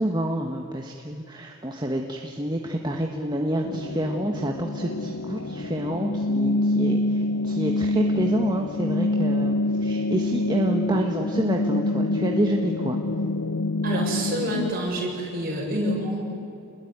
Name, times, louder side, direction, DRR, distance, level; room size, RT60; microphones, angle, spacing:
voice 1, 0.0-13.0, right 1 dB, 20° right, 1 dB, 1.5 m, -28 dB
sound 1, 3.6-14.7, left 2 dB, 85° left, 0.9 m, -26 dB
voice 2, 13.8-16.2, right 1 dB, 40° right, -2 dB, 7.6 m, -27 dB
28.5 x 21.5 x 9.6 m, 2.6 s
head